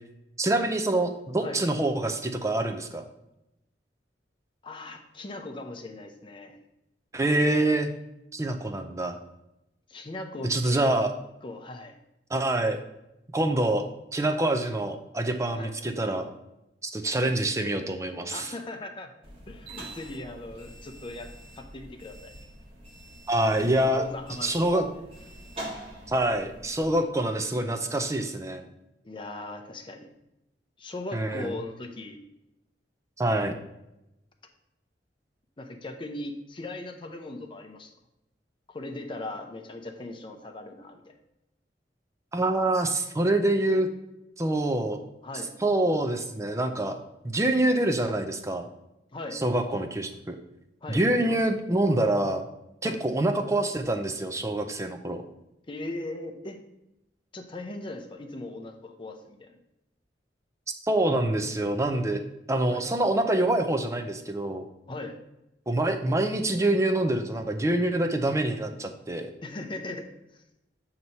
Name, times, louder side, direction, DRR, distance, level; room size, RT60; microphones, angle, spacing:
voice 1, 0.4-3.0 7.1-7.9 8.3-9.2 10.5-11.1 12.3-12.8 13.3-13.8 14.1-16.2 16.9-18.5 23.3-24.0 24.4-24.9 26.1-28.7 31.1-31.5 33.2-33.6 42.3-43.9 44.4-45.0 45.6-47.0 47.2-48.7 49.3-50.4 50.9-52.4 52.8-55.2 60.8-62.2 62.5-64.6 65.7-69.3, right 1 dB, 15° right, 6 dB, 0.5 m, -26 dB
voice 2, 4.6-6.6 9.9-10.8 11.4-12.0 15.6-15.7 18.3-19.1 19.5-22.3 23.8-25.0 29.0-30.1 30.8-32.2 35.6-37.9 38.7-41.1 45.2-45.5 49.1-49.4 50.8-51.4 52.8-53.0 55.7-56.6 57.3-59.6 62.7-62.9 64.9-65.2 69.4-70.4, left 2 dB, 30° left, 5 dB, 0.7 m, -39 dB
sound 1, 19.2-26.9, right 1 dB, 35° right, 1.4 m, -45 dB
7.8 x 2.9 x 5.4 m, 0.89 s
head